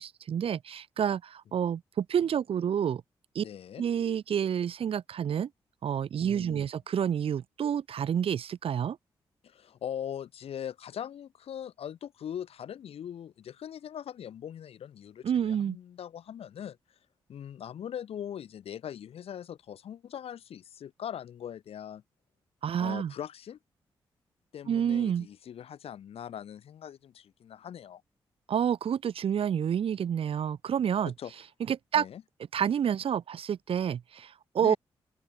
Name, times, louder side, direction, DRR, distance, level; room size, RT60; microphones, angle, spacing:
voice 1, 0.0-3.0 3.3-3.4 3.8-5.5 5.8-9.0 15.2-15.8 22.6-23.1 24.7-25.3 28.5-31.1 31.7-32.0 32.5-34.8, right 8 dB, 65° right, 1.1 m, -29 dB
voice 2, 3.4-3.8 6.2-6.6 9.4-16.8 17.3-22.0 22.8-23.6 24.5-28.0 31.2-31.3 31.9-32.2 34.6-34.8, left 9 dB, 75° left, 2.2 m, -41 dB
open air
supercardioid pair, 45°, 10 cm